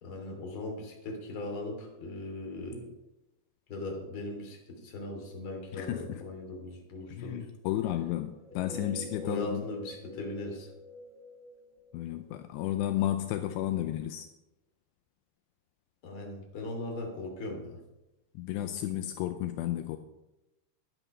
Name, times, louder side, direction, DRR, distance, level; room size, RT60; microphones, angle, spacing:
voice 1, 0.0-2.9 3.7-7.5 8.7-10.7 16.0-17.8, left 2 dB, 35° left, 1 dB, 2.9 m, -39 dB
voice 2, 5.7-6.2 7.1-9.6 11.9-14.3 18.4-20.0, left 13 dB, 80° left, 8 dB, 2.7 m, -32 dB
sound 1, 8.3-12.9, left 2 dB, 40° right, 1.7 m, -48 dB
12.0 x 11.0 x 5.5 m, 0.97 s
omnidirectional pair, 5.2 m